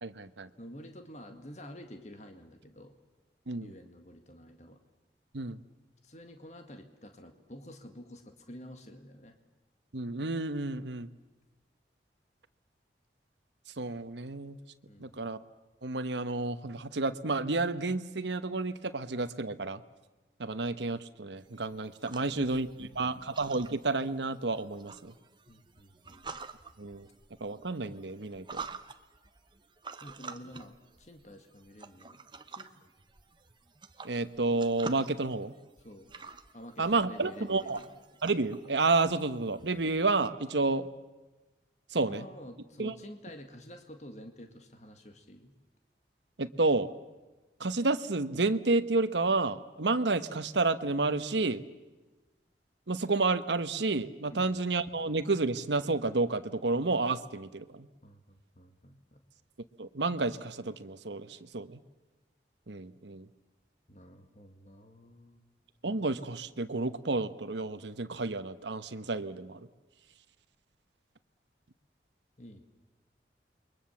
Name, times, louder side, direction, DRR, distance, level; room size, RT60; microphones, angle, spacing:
voice 1, 0.0-0.5 3.5-3.7 5.3-5.6 9.9-11.1 13.8-14.6 15.0-15.4 15.8-19.8 20.4-25.1 26.8-27.1 27.4-28.6 34.0-35.5 36.8-37.8 38.2-40.9 41.9-42.3 42.8-42.9 46.4-46.9 47.6-51.6 52.9-57.9 59.8-61.8 62.7-63.3 65.8-69.7, right 3 dB, 85° right, 11 dB, 1.1 m, -30 dB
voice 2, 0.6-3.0 3.6-4.8 6.0-9.3 14.9-15.2 22.1-22.5 22.8-23.3 25.5-26.3 30.0-32.2 32.6-32.7 35.8-36.1 36.5-37.9 42.0-45.5 54.3-54.6 58.0-59.2 63.9-65.5 72.4-72.6, equal, 40° left, 6 dB, 1.9 m, -49 dB
sound 1, 21.4-40.3, right 4 dB, 25° right, 0.9 m, -48 dB
28.5 x 23.0 x 7.3 m, 1.2 s
head